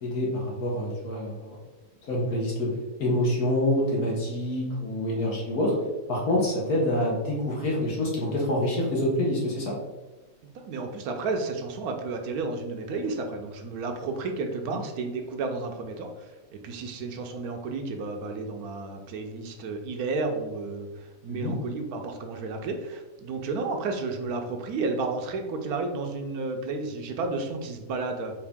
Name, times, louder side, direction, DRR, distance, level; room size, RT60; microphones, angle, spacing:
voice 1, 0.0-1.6 2.1-5.8 6.1-9.8 21.3-21.5, left 1 dB, 80° left, -4 dB, 1.5 m, -26 dB
voice 2, 10.5-28.3, right 3 dB, 85° right, 4 dB, 1.1 m, -32 dB
4.8 x 2.6 x 3.4 m, 1.1 s
omnidirectional pair, 1.6 m